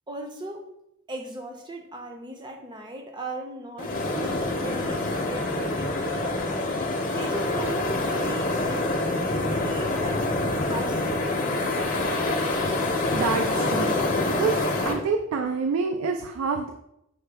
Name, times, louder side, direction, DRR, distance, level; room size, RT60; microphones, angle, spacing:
voice 1, 0.1-0.6 1.1-6.5 7.1-9.0 9.3-10.3 10.6-11.5, right 2 dB, 20° right, 3 dB, 0.5 m, -38 dB
sound 1, 3.8-14.9, left 2 dB, 40° left, 0.6 m, -26 dB
voice 2, 13.1-13.9 14.4-16.7, right 5 dB, 85° right, 5 dB, 0.3 m, -27 dB
5.6 x 2.2 x 3.3 m, 0.81 s
head